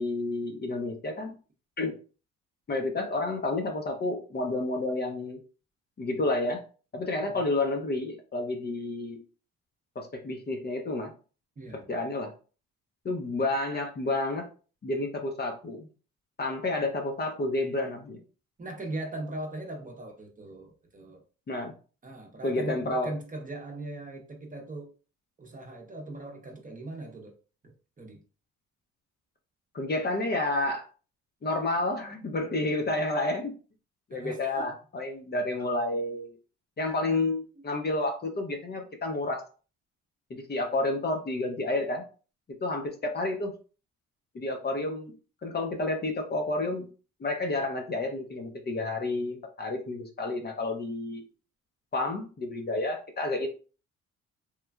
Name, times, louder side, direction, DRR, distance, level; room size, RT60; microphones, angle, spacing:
voice 1, 0.0-1.3 1.8-1.9 2.7-5.4 6.0-6.6 6.9-9.2 10.0-11.1 11.9-12.3 13.0-14.5 14.8-15.9 16.4-18.2 21.5-21.7 22.4-23.1 29.7-30.9 31.4-33.5 34.1-36.4 36.8-39.4 40.3-42.0 42.6-43.5 44.3-45.1 45.4-46.9 47.2-51.2 51.9-53.5, left 2 dB, 35° left, 3 dB, 0.6 m, -30 dB
voice 2, 11.6-11.9 18.6-21.2 22.0-24.9 25.4-27.3 27.6-28.2 34.1-34.7, right 2 dB, 25° right, 2 dB, 0.7 m, -40 dB
3.0 x 2.3 x 2.3 m, 0.36 s
cardioid pair, 90°, 30 cm